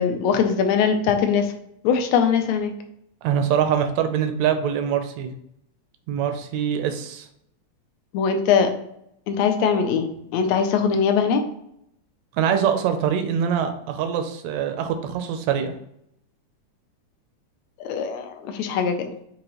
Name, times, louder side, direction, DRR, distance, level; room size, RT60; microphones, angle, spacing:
voice 1, 0.0-1.5 1.8-2.7 8.1-8.7 9.3-11.4 17.8-19.0, left 6 dB, 80° left, 5 dB, 1.7 m, -21 dB
voice 2, 3.2-5.3 6.1-7.2 12.4-15.7, right 8 dB, 75° right, 7 dB, 1.6 m, -23 dB
6.2 x 2.8 x 2.9 m, 0.75 s
omnidirectional pair, 3.5 m